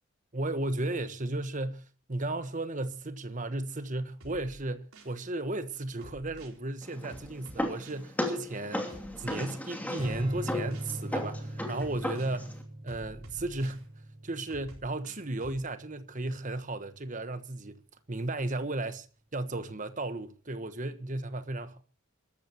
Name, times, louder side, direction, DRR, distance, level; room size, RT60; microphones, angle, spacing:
voice 1, 0.3-12.6 12.8-13.9 14.2-17.8 18.1-19.1 19.3-21.8, right 2 dB, 35° right, 1.3 m, -34 dB
sound 1, 4.2-5.2 6.0-6.6 7.1-8.1 8.9-9.4 10.0-11.0 11.8-12.4 12.9-13.8 14.5-15.6, right 1 dB, 80° right, 4.4 m, -50 dB
sound 2, 6.8-12.6, left 1 dB, 5° left, 2.7 m, -36 dB
Strum, 10.0-16.4, right 1 dB, 20° right, 5.7 m, -41 dB
26.0 x 14.0 x 3.0 m
head